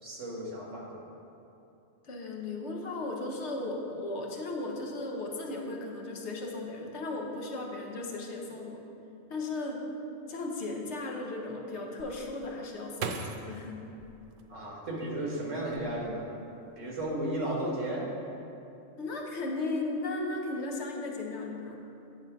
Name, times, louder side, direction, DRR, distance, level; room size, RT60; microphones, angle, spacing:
voice 1, 0.0-1.0 14.5-16.3 16.8-18.1, right 1 dB, 80° right, -3 dB, 1.8 m, -34 dB
voice 2, 2.0-8.8 9.3-9.8 10.3-13.8 19.0-21.8, left 2 dB, 65° left, 0 dB, 1.1 m, -36 dB
sound 1, 12.0-15.1 15.6-16.4 16.7-17.1, right 5 dB, 60° right, 0.6 m, -40 dB
8.7 x 3.9 x 5.8 m, 2.8 s
omnidirectional pair, 1.3 m